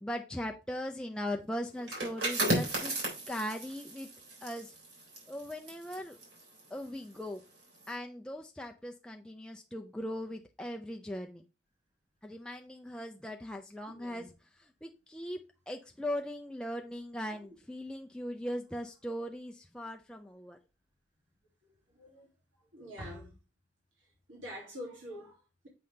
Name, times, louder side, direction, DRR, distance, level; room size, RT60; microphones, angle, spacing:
voice 1, 0.0-2.9 3.3-4.1 4.4-4.7 5.3-6.2 6.7-7.4 7.9-11.4 12.2-14.3 14.6-20.6, equal, 5° left, 0.4 m, -39 dB
sound 1, 1.8-7.3 7.6-7.9, right 1 dB, 65° right, 3.6 m, -35 dB
voice 2, 13.9-14.3 17.3-17.5 21.9-22.3 22.7-23.4 24.0-25.7, equal, 90° right, 2.3 m, -46 dB
7.7 x 5.5 x 3.2 m
head